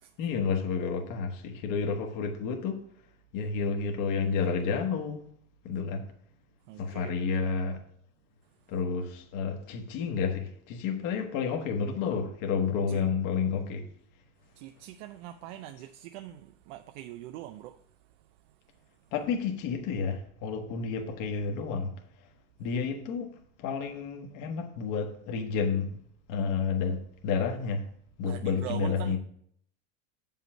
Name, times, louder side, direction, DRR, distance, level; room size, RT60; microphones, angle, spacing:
voice 1, 0.2-2.8 3.3-5.2 5.6-6.0 6.8-7.8 8.7-13.8 19.1-21.9 22.6-26.0 26.3-27.9 28.2-29.2, left 5 dB, 45° left, 1.4 m, -30 dB
voice 2, 6.7-7.2 12.9-13.0 14.6-17.8 28.2-29.2, right 13 dB, 55° right, 0.6 m, -42 dB
7.4 x 5.6 x 5.3 m
supercardioid pair, 125°, 42 cm